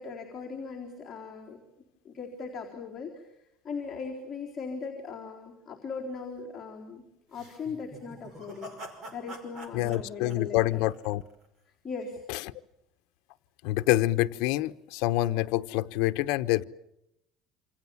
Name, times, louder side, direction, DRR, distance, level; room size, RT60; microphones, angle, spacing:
voice 1, 0.0-1.6 2.0-3.2 3.6-7.0 7.3-8.7 9.1-10.8 11.8-12.2, left 5 dB, 15° left, -4 dB, 4.0 m, -39 dB
sound 1, 7.3-11.5, equal, 35° right, 5.3 m, -46 dB
voice 2, 9.7-11.2 12.3-12.5 13.6-16.6, left 16 dB, 65° left, 11 dB, 1.0 m, -27 dB
28.5 x 27.0 x 7.3 m, 0.82 s
cardioid pair, 180°, 0 cm